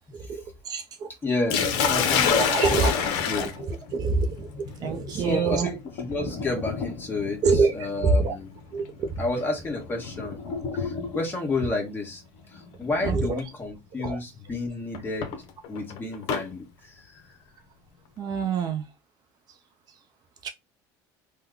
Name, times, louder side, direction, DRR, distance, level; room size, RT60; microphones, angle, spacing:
voice 1, 0.7-1.1 2.0-2.1 2.3-2.9 3.6-5.7 7.4-7.7 8.0-8.3 8.7-9.1 13.0-13.4 14.0-14.2 18.2-18.8 20.4-20.5, right 4 dB, 45° right, 0.6 m, -25 dB
voice 2, 1.2-3.5 5.1-8.5 9.2-10.4 10.8-12.2 12.5-15.3 15.7-16.9, left 2 dB, 20° left, 1.4 m, -31 dB
Sink (filling or washing), 1.5-11.4 12.6-12.9 13.4-13.5 14.9-16.5, left 7 dB, 65° left, 0.7 m, -29 dB
3.3 x 2.2 x 3.6 m
supercardioid pair, 125°, 9 cm